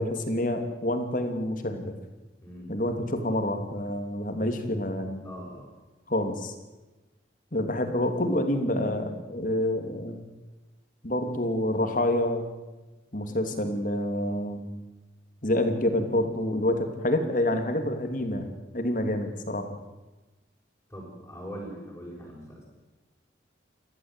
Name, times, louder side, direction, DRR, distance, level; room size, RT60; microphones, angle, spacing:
voice 1, 0.0-1.9 2.7-5.2 6.1-6.5 7.5-10.2 11.0-12.5 13.1-14.7 15.4-18.5 18.7-19.8, left 1 dB, 45° left, 6 dB, 2.9 m, -27 dB
voice 2, 2.4-2.7 5.2-5.7 20.9-22.7, equal, 10° left, -7 dB, 6.4 m, -41 dB
30.0 x 13.0 x 9.2 m, 1.1 s
head